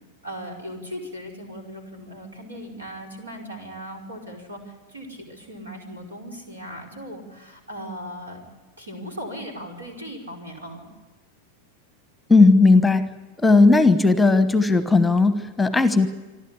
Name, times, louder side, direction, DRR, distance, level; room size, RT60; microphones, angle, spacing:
voice 1, 0.2-8.4 8.8-10.9, equal, 75° right, 2 dB, 5.1 m, -38 dB
voice 2, 12.3-16.1, left 3 dB, 5° left, 12 dB, 1.1 m, -16 dB
27.0 x 12.5 x 9.8 m, 1.2 s
figure-of-eight pair, 90°, 0 cm